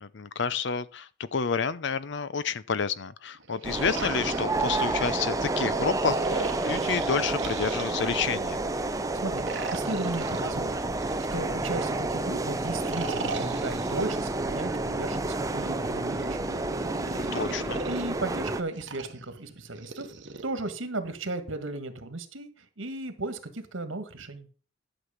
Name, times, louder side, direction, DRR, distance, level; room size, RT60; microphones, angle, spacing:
voice 1, 0.0-8.6 17.2-17.8, left 5 dB, 65° left, 0.6 m, -30 dB
sound 1, 3.3-5.3 6.1-8.5 9.3-11.9 12.7-14.3 15.3-18.1 18.7-20.4, right 4 dB, 65° right, 1.3 m, -39 dB
sound 2, 3.6-18.6, right 2 dB, 15° right, 0.6 m, -30 dB
voice 2, 9.2-10.8 11.3-16.6 17.1-17.3 17.9-20.1 20.4-24.5, right 2 dB, 85° right, 1.7 m, -35 dB
11.5 x 6.2 x 5.0 m
head